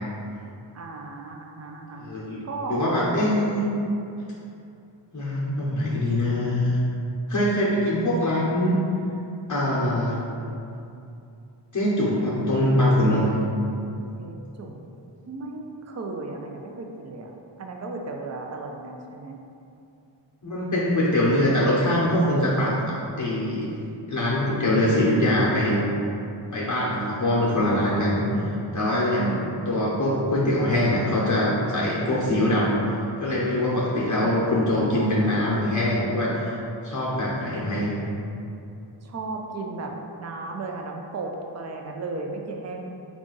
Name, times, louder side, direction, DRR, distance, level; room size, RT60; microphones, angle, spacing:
voice 1, 0.7-2.1 2.4-3.5 14.2-14.8 15.3-17.3 17.6-19.3 28.4-28.8 29.2-29.6 34.1-35.2 39.0-39.9 40.2-42.8, right 3 dB, 35° right, 2 dB, 0.4 m, -35 dB
voice 2, 2.0-2.4 2.7-3.6 5.1-6.8 7.3-8.8 9.5-10.2 11.7-13.4 20.4-23.7 24.1-25.8 26.5-28.2 28.7-36.5 36.8-38.0, left 1 dB, 40° left, -7 dB, 0.7 m, -23 dB
3.7 x 2.4 x 3.8 m, 2.7 s
wide cardioid pair, 65°, 46 cm